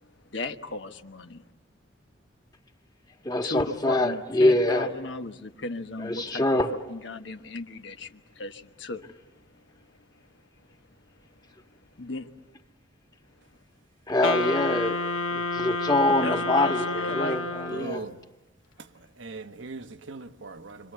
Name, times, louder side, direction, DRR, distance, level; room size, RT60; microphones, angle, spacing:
voice 1, 0.0-1.4 3.4-6.4 6.7-9.1 12.0-12.3 16.2-17.4, left 2 dB, 65° left, 1.3 m, -35 dB
voice 2, 3.2-4.9 6.0-6.7 14.1-15.0 15.3-16.8 17.1-18.0, left 1 dB, 20° left, 1.7 m, -24 dB
Wind instrument woodwind instrument, 14.2-18.1, left 3 dB, 85° left, 1.2 m, -30 dB
voice 3, 17.7-18.2 18.8-20.9, right 3 dB, 70° right, 1.1 m, -40 dB
27.5 x 25.5 x 8.3 m
head